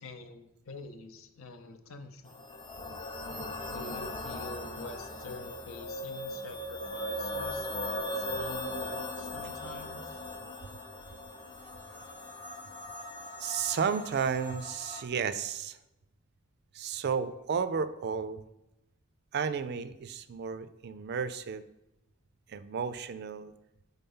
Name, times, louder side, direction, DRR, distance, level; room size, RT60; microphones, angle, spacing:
voice 1, 0.0-2.4 3.6-10.2, left 3 dB, 70° left, 8 dB, 0.7 m, -46 dB
sound 1, 2.3-15.0, left 1 dB, 25° left, 0.5 m, -39 dB
voice 2, 13.4-15.8 16.7-18.4 19.3-21.7 22.5-23.5, right 6 dB, 50° right, 13 dB, 0.4 m, -33 dB
5.7 x 4.0 x 5.4 m, 0.92 s
head